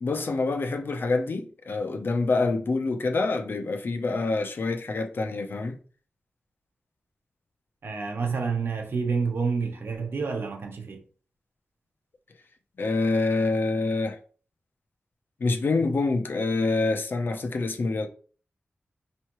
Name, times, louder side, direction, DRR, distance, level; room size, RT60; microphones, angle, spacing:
voice 1, 0.0-5.8 12.8-14.2 15.4-18.1, left 3 dB, 60° left, 0.7 m, -26 dB
voice 2, 7.8-11.0, right 5 dB, 70° right, 1.0 m, -28 dB
5.6 x 3.1 x 3.1 m
wide cardioid pair, 95°, 4 cm